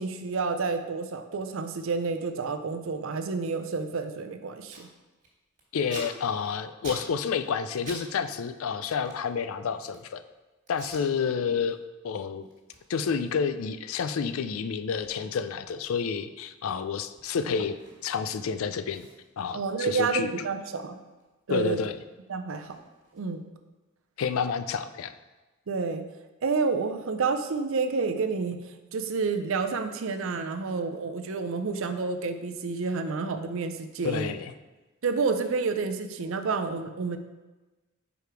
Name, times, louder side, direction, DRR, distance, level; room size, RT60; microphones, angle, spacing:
voice 1, 0.0-4.9 19.5-21.0 21.5-21.8 22.3-22.8 23.1-23.4 25.7-26.0 26.4-34.3 35.0-37.2, right 4 dB, 65° right, 8 dB, 0.5 m, -29 dB
Packing tape duct tape, 4.7-4.9 5.2-8.0 8.3-10.1 10.7-11.0 11.5-11.7 12.1-18.3 18.5-18.6 18.9-21.3 21.5-23.5, right 2 dB, 35° right, 2.0 m, -48 dB
voice 2, 5.7-10.2 10.7-11.8 12.0-12.5 12.9-19.1 19.4-20.5 21.5-22.0 24.2-25.1 34.0-34.5, left 6 dB, 70° left, 11 dB, 0.4 m, -29 dB
5.0 x 4.9 x 4.5 m, 1.2 s
head